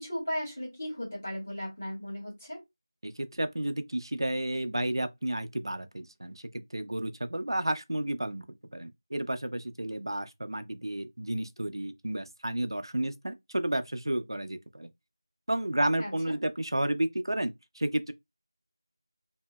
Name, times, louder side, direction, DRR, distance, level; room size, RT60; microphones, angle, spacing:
voice 1, 0.0-2.6 16.0-16.3, equal, 25° left, 1.5 m, -36 dB
voice 2, 3.0-8.5 8.7-14.9 15.5-18.1, right 1 dB, 70° right, 0.4 m, -32 dB
2.8 x 2.6 x 2.2 m
figure-of-eight pair, 180°, 2 cm